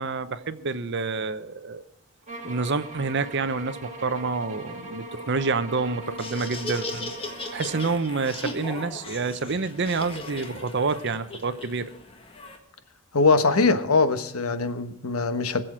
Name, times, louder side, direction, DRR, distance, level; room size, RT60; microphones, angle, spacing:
voice 1, 0.0-1.8 2.4-7.1 7.5-11.9, right 4 dB, 55° right, 13 dB, 0.8 m, -28 dB
sound 1, 2.3-8.0, right 2 dB, 35° right, 1.8 m, -40 dB
Laughter, 6.0-12.6, left 2 dB, 25° left, 1.6 m, -38 dB
voice 2, 13.1-15.6, left 3 dB, 90° left, 10 dB, 1.1 m, -22 dB
20.5 x 7.7 x 4.9 m, 0.87 s
head